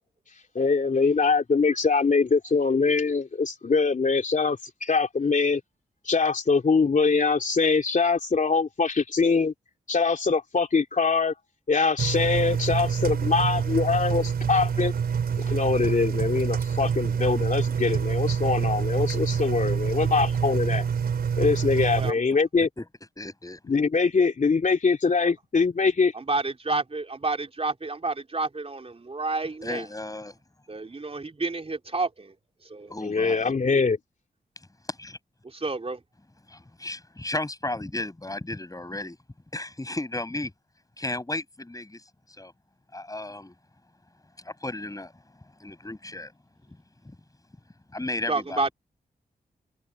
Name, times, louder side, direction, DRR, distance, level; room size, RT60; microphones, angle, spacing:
voice 1, 0.5-5.6 6.0-9.5 9.9-11.3 11.7-14.9 15.4-20.9 21.4-22.7 23.7-26.1 33.0-34.0, left 4 dB, 50° left, 3.2 m, -23 dB
Engine, 12.0-22.1, right 7 dB, 75° right, 4.4 m, -26 dB
voice 2, 23.2-23.6 29.6-30.4 32.9-33.5 34.9-35.2 36.5-39.2 39.5-40.5 41.0-42.0 42.4-42.5 42.9-43.5 44.4-45.1 45.6-46.3 47.0-47.2 47.9-48.7, left 2 dB, 20° left, 7.1 m, -34 dB
voice 3, 26.1-29.8 30.7-32.3 32.7-32.9 35.4-36.0 48.3-48.7, right 3 dB, 35° right, 3.8 m, -30 dB
supercardioid pair, 45°, 16 cm